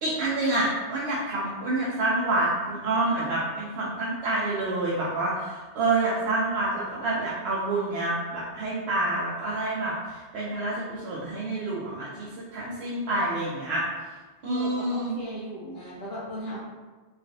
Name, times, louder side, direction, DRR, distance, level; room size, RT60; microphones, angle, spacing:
voice 1, 0.0-13.8 14.4-15.2, right 2 dB, 75° right, -6 dB, 0.8 m, -28 dB
voice 2, 14.4-16.6, equal, 70° left, -8 dB, 0.9 m, -37 dB
3.1 x 2.5 x 2.6 m, 1.3 s
omnidirectional pair, 1.1 m